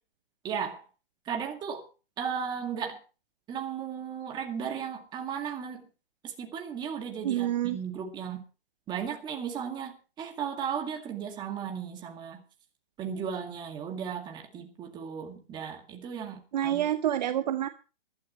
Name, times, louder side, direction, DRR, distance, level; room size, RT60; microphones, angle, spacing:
voice 1, 0.4-0.8 1.3-1.9 2.2-3.0 3.5-5.9 6.2-8.4 8.9-12.4 13.0-16.8, right 7 dB, 15° right, 2.1 m, -35 dB
voice 2, 7.2-7.8 16.5-17.7, right 12 dB, 45° right, 0.8 m, -27 dB
22.0 x 12.0 x 3.1 m
hypercardioid pair, 155°, 30 cm